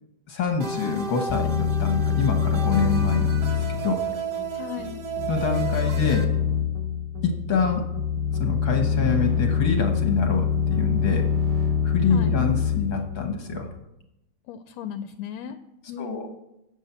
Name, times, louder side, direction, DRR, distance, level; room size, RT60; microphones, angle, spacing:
voice 1, 0.3-4.0 5.3-6.4 7.2-7.9 8.4-11.3 11.8-13.7 16.0-16.3, left 5 dB, 55° left, 4 dB, 1.4 m, -26 dB
sound 1, 0.6-6.2, right 4 dB, 60° right, 1.1 m, -33 dB
sound 2, 1.3-13.8, left 6 dB, 30° right, 2.3 m, -25 dB
voice 2, 4.5-5.0 12.1-12.4 14.5-15.6 15.9-16.3, left 8 dB, 80° left, 9 dB, 1.8 m, -36 dB
9.8 x 7.4 x 7.9 m, 0.89 s
omnidirectional pair, 3.3 m